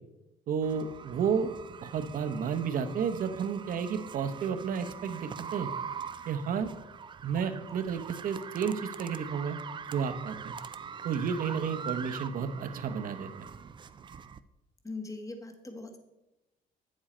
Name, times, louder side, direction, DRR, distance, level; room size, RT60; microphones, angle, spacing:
voice 1, 0.5-1.5 1.8-5.7 6.3-6.7 7.2-9.6 9.9-10.5 11.0-13.5, right 6 dB, 55° right, 9 dB, 0.9 m, -32 dB
sound 1, 0.6-14.4, right 7 dB, 30° right, 0.4 m, -43 dB
voice 2, 14.8-16.0, left 3 dB, 20° left, 6 dB, 1.3 m, -40 dB
8.6 x 7.4 x 4.3 m, 0.97 s
cardioid pair, 110°, 17 cm